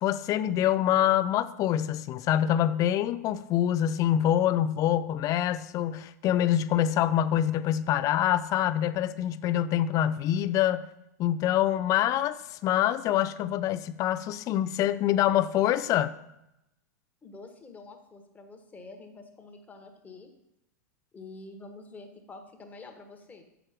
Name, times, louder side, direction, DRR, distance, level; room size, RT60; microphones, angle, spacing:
voice 1, 0.0-10.8 11.2-16.1, left 11 dB, 35° left, 0.4 m, -25 dB
voice 2, 17.2-20.3 21.1-23.4, left 3 dB, 15° left, 1.3 m, -47 dB
7.4 x 6.1 x 4.9 m
hypercardioid pair, 95°, 9 cm